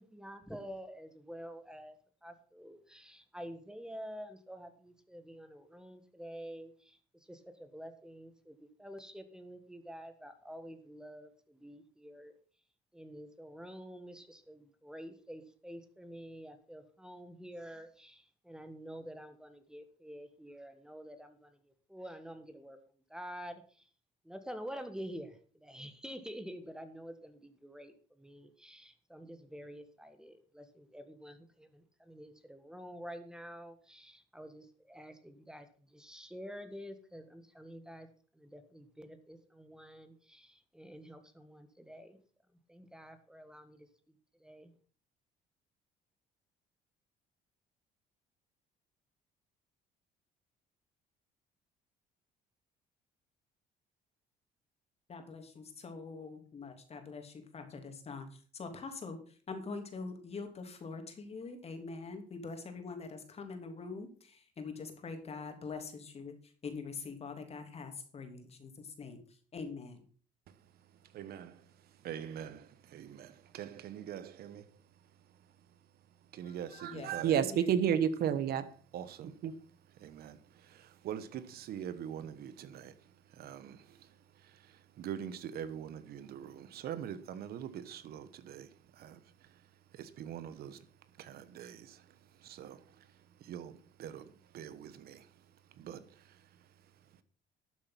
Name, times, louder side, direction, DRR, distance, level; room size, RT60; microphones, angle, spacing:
voice 1, 0.0-12.3 12.9-23.9 24.2-38.1 38.3-42.2 42.7-44.7, equal, 5° right, 1.6 m, -48 dB
voice 2, 55.1-70.0 76.4-77.8, left 4 dB, 35° left, 3.0 m, -44 dB
voice 3, 70.9-74.8 75.2-75.4 76.3-90.9 91.2-97.2, right 9 dB, 65° right, 1.2 m, -39 dB
12.5 x 7.3 x 5.9 m
cardioid pair, 110°, 17 cm